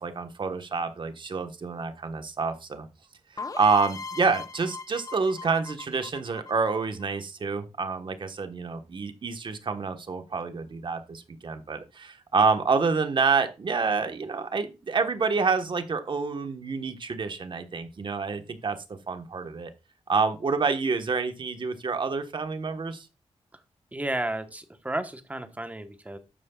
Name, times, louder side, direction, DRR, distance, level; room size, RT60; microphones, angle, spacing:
voice 1, 0.0-2.9 3.3-18.8 19.1-19.7 20.1-23.1, right 4 dB, 50° right, 8 dB, 1.4 m, -28 dB
sound 1, 3.4-7.1, left 4 dB, 35° left, 0.8 m, -38 dB
voice 2, 23.9-26.2, right 1 dB, 15° right, 8 dB, 1.2 m, -33 dB
12.5 x 9.4 x 2.4 m, 0.27 s
wide cardioid pair, 155°, 11 cm